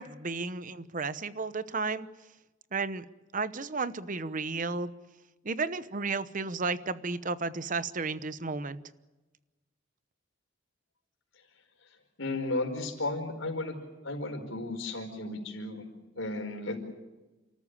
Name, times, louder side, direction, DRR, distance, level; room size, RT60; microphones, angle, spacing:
voice 1, 0.0-2.1 2.7-3.0 3.3-4.9 5.4-8.8, right 4 dB, 40° right, 14 dB, 0.9 m, -33 dB
voice 2, 12.2-13.7 14.0-15.8 16.2-16.8, left 2 dB, 75° left, 3 dB, 5.0 m, -34 dB
30.0 x 14.0 x 9.9 m, 1.1 s
head